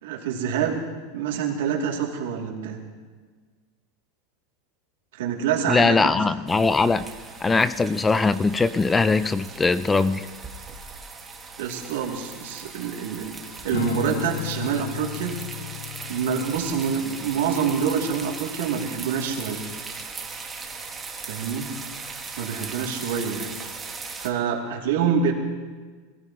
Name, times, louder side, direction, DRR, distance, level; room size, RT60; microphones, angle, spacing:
voice 1, 0.0-0.8 1.1-2.8 5.2-6.1 11.6-13.3 13.6-15.4 16.1-19.6 21.3-21.7 22.4-23.5 24.2-25.3, right 7 dB, 80° right, -1 dB, 2.7 m, -26 dB
voice 2, 5.7-7.1 7.4-10.3, left 3 dB, 10° left, 15 dB, 0.3 m, -21 dB
sound 1, 6.5-24.3, right 4 dB, 10° right, 1.2 m, -39 dB
Strum, 13.7-20.1, left 16 dB, 75° left, 0.6 m, -36 dB
23.5 x 15.5 x 3.1 m, 1.5 s
supercardioid pair, 165°, 0 cm